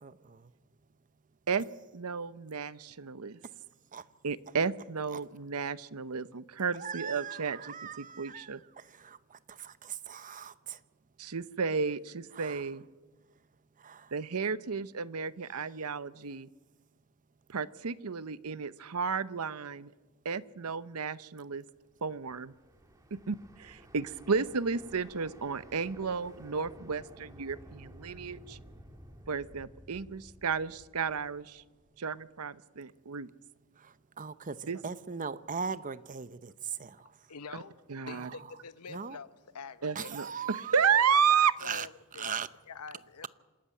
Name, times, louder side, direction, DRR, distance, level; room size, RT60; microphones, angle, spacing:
voice 1, 0.0-0.5 3.9-4.1 5.1-5.2 6.7-10.8 12.3-12.7 13.8-14.1 33.8-37.3 38.1-38.5 38.9-39.2 39.9-40.8 41.6-41.9 42.1-42.5, right 6 dB, 35° right, 0.8 m, -40 dB
voice 2, 1.9-3.4 4.2-8.6 11.2-12.8 14.1-16.5 17.5-19.9 20.2-21.6 22.0-22.5 23.1-28.6 29.3-31.6 32.0-33.3 34.7-34.8 37.5-37.6 37.9-38.3 39.8-41.5, right 6 dB, 75° right, 0.8 m, -32 dB
sound 1, 22.0-32.0, equal, 15° right, 1.9 m, -54 dB
voice 3, 37.3-39.3 39.5-40.1 41.1-43.3, left 5 dB, 85° left, 0.8 m, -46 dB
26.5 x 13.0 x 9.2 m
head